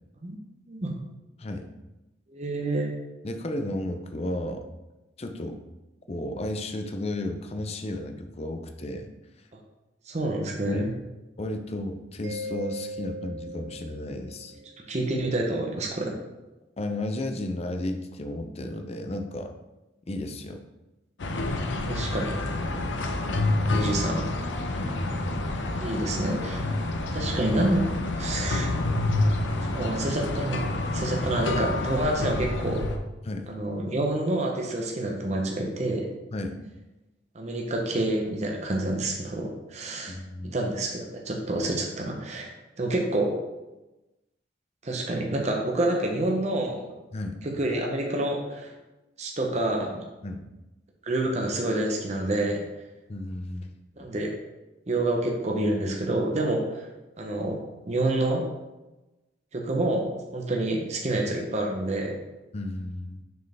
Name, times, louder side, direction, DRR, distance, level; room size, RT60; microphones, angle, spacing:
voice 1, 2.3-2.9 10.1-10.9 14.9-16.1 21.9-22.3 23.7-24.3 25.8-26.6 27.1-27.9 28.2-28.7 29.7-30.6 30.9-32.8 33.5-36.1 37.3-40.1 40.5-42.5 42.8-43.3 44.8-46.8 47.4-48.7 49.2-50.0 51.0-52.6 54.0-54.3 54.9-56.9 57.2-58.4 59.5-62.1, right 1 dB, 40° right, 0 dB, 0.8 m, -28 dB
voice 2, 3.2-4.7 5.2-5.6 6.1-9.1 10.7-10.9 11.4-14.5 16.8-19.5 20.1-20.6 21.5-21.6 22.7-22.9 24.7-25.0 33.3-33.5 36.3-36.6 40.1-40.6 47.1-47.4 50.2-50.4 53.1-53.7 62.5-63.2, left 1 dB, 35° left, 6 dB, 0.5 m, -33 dB
Mallet percussion, 12.2-14.8, right 1 dB, 85° right, 1.1 m, -38 dB
sound 1, 21.2-33.0, left 2 dB, 80° left, 0.7 m, -28 dB
6.5 x 4.5 x 3.4 m, 1.0 s
head